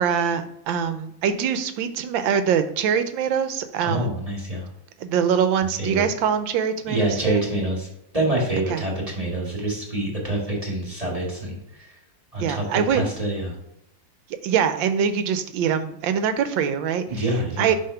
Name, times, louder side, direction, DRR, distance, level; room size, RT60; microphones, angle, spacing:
voice 1, 0.0-4.1 5.0-7.4 8.7-8.8 12.4-13.0 14.4-17.2 17.6-17.7, right 7 dB, 75° right, 9 dB, 1.3 m, -23 dB
voice 2, 3.8-4.7 5.8-6.1 6.8-7.9 8.1-11.9 12.3-13.5 17.0-17.7, right 1 dB, 20° right, -3 dB, 1.7 m, -26 dB
5.6 x 3.4 x 5.4 m, 0.81 s
omnidirectional pair, 2.2 m